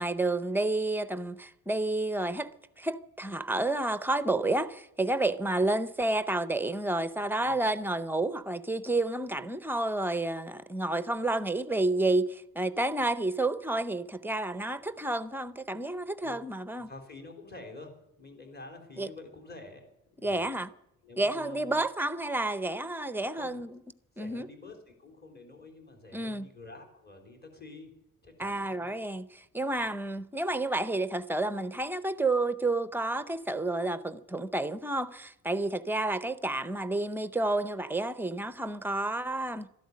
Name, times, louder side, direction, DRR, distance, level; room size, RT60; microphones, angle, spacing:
voice 1, 0.0-2.5 2.8-16.9 19.0-19.1 20.2-20.7 21.2-23.7 24.2-24.5 26.1-26.5 28.4-39.7, right 2 dB, 5° right, 0.6 m, -30 dB
voice 2, 16.8-17.9 18.2-19.9 20.2-20.5 21.0-21.8 23.3-23.6 24.2-27.9 28.2-28.9 29.8-29.9, left 2 dB, 30° left, 3.7 m, -48 dB
13.5 x 11.5 x 9.4 m
cardioid pair, 160°, 35 cm